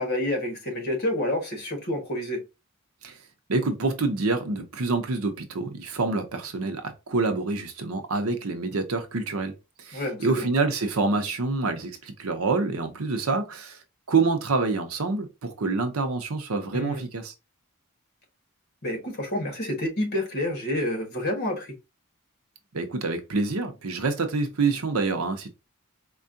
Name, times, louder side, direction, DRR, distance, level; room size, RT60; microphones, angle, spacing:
voice 1, 0.0-2.4 9.9-10.5 16.7-17.0 18.8-21.7, left 1 dB, 50° left, 1.3 m, -28 dB
voice 2, 3.5-9.5 9.8-13.8 14.1-17.3 22.7-25.5, right 3 dB, 75° right, 0.7 m, -27 dB
4.5 x 2.3 x 2.5 m
head